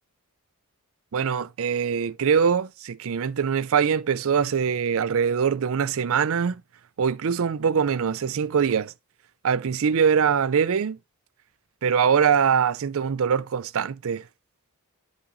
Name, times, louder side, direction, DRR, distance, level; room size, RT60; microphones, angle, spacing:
voice 1, 1.1-6.6 7.0-8.9 9.4-11.0 11.8-14.2, right 7 dB, 65° right, 0.4 m, -23 dB
8.7 x 5.1 x 3.8 m
head